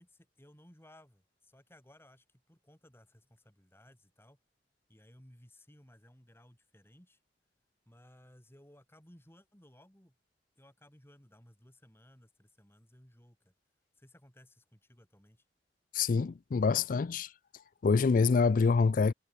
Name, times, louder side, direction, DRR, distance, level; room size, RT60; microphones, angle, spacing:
voice 1, 0.0-4.4 4.9-7.2 7.9-10.1 10.6-13.5 14.0-15.4, left 1 dB, 15° left, 4.8 m, -60 dB
voice 2, 15.9-17.3 17.8-19.1, left 4 dB, 50° left, 0.4 m, -26 dB
head